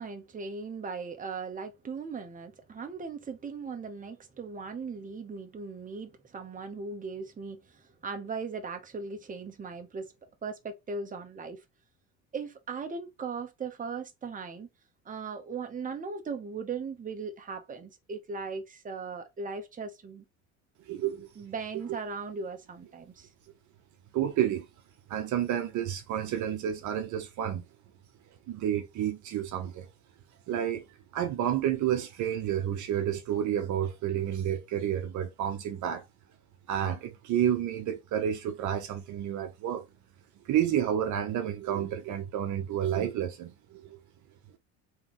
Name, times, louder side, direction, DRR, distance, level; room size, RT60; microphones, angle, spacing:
voice 1, 0.0-10.1 10.4-11.6 12.3-14.7 15.0-20.2 21.4-23.3, right 5 dB, 25° right, 1.0 m, -38 dB
voice 2, 20.9-21.3 21.9-22.0 24.1-24.6 25.1-27.6 28.5-29.9 30.5-30.8 31.1-36.0 36.7-39.8 40.5-44.0, right 10 dB, 55° right, 0.9 m, -30 dB
3.5 x 3.3 x 3.1 m
supercardioid pair, 80°, 35 cm